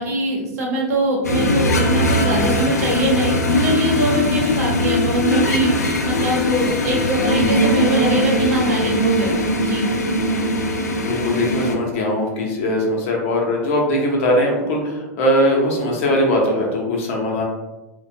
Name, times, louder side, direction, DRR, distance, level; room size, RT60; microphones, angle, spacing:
voice 1, 0.0-9.9, right 1 dB, 65° right, -2 dB, 0.8 m, -22 dB
sound 1, 1.2-11.8, left 1 dB, 85° left, 0.4 m, -20 dB
voice 2, 11.0-17.4, left 1 dB, 55° left, -1 dB, 0.7 m, -20 dB
2.4 x 2.2 x 2.6 m, 1.0 s
figure-of-eight pair, 95°, 9 cm